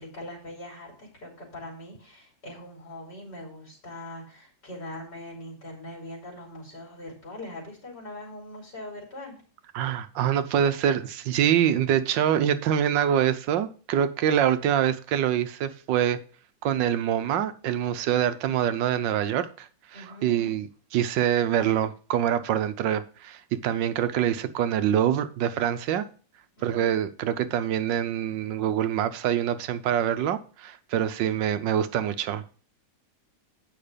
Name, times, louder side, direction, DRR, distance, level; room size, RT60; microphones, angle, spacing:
voice 1, 0.0-9.3 19.9-20.5 26.6-26.9, left 1 dB, 70° left, 3.9 m, -41 dB
voice 2, 9.7-16.2 16.6-26.1 26.6-32.4, right 10 dB, 80° right, 1.4 m, -25 dB
8.8 x 5.8 x 5.0 m
omnidirectional pair, 1.9 m